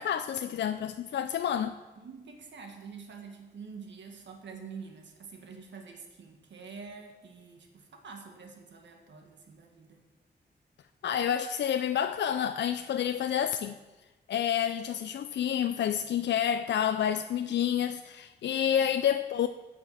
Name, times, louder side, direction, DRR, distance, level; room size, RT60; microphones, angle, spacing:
voice 1, 0.0-1.8 11.0-13.8 14.3-19.5, left 9 dB, 80° left, 0.4 m, -29 dB
voice 2, 2.0-10.0, right 5 dB, 85° right, 1.5 m, -47 dB
8.7 x 6.0 x 8.2 m
wide cardioid pair, 115°, 18 cm